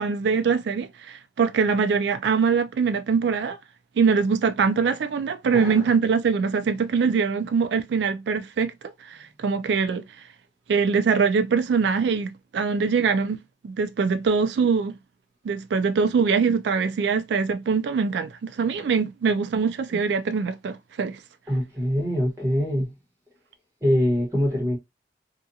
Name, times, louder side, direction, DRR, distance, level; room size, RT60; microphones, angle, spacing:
voice 1, 0.0-3.6 4.0-10.0 10.7-14.9 15.4-21.2, right 5 dB, 70° right, 0.3 m, -23 dB
voice 2, 5.5-5.9 21.5-22.9 23.8-24.8, equal, 15° right, 1.1 m, -24 dB
2.5 x 2.3 x 2.7 m
head